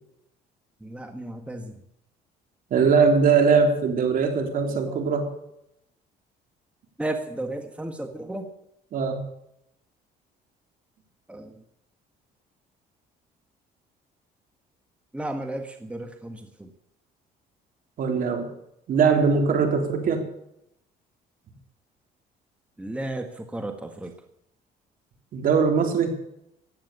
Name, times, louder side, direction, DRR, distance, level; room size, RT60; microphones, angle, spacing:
voice 1, 0.8-1.8 4.7-5.0 7.0-8.5 11.3-11.6 15.1-16.7 22.8-24.1, right 1 dB, 5° right, 6 dB, 1.5 m, -34 dB
voice 2, 2.7-5.3 8.9-9.2 18.0-18.5 18.9-20.3 25.3-26.2, right 5 dB, 55° right, 5 dB, 3.5 m, -21 dB
15.0 x 10.5 x 6.8 m, 0.81 s
cardioid pair, 110°, 17 cm